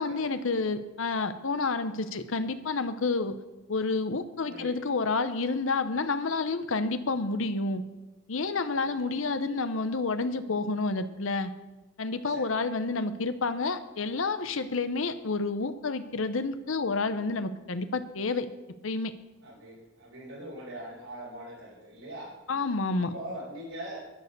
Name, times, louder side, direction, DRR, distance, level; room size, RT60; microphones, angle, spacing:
voice 1, 0.0-3.3 3.7-7.8 8.3-11.5 12.0-18.5 18.8-19.1 22.5-23.1, left 3 dB, 65° left, 11 dB, 0.8 m, -29 dB
voice 2, 19.4-22.3 23.0-24.0, right 1 dB, 85° right, -7 dB, 4.4 m, -42 dB
11.0 x 10.5 x 6.7 m, 1.1 s
head